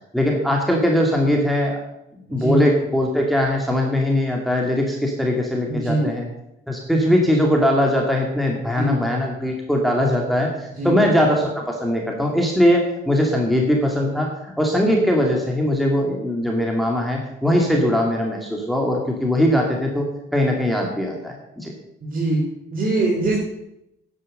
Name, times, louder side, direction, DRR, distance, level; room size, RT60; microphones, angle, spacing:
voice 1, 0.1-1.8 2.3-6.3 6.7-20.1 20.3-21.7, left 1 dB, ahead, -1 dB, 2.4 m, -20 dB
voice 2, 2.3-2.6 5.7-6.1 8.8-9.0 10.7-11.0 22.0-22.4 22.7-23.4, right 2 dB, 45° right, -2 dB, 3.7 m, -23 dB
10.5 x 9.6 x 6.6 m, 0.85 s
cardioid pair, 90°, 20 cm